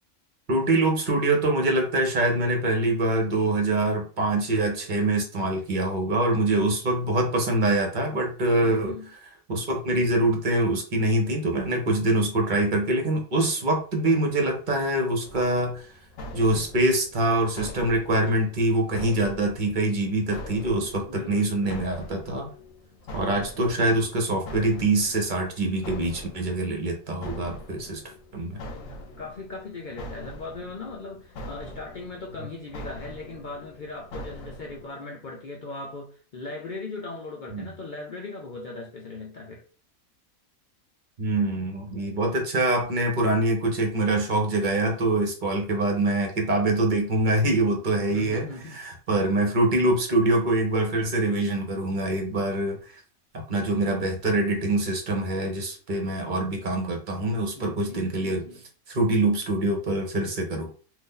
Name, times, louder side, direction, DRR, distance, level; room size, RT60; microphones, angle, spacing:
voice 1, 0.5-8.9 9.5-15.8 16.3-22.5 23.1-28.0 28.3-28.6 37.5-37.7 41.2-52.9 53.5-58.4 58.9-60.7, right 2 dB, 40° right, 0.9 m, -24 dB
voice 2, 8.6-9.1 21.1-21.7 28.9-39.6 48.1-48.8 57.5-58.6, left 3 dB, 55° left, 0.5 m, -39 dB
sound 1, 15.2-34.9, equal, 80° left, 1.0 m, -43 dB
2.7 x 2.5 x 3.7 m
omnidirectional pair, 1.4 m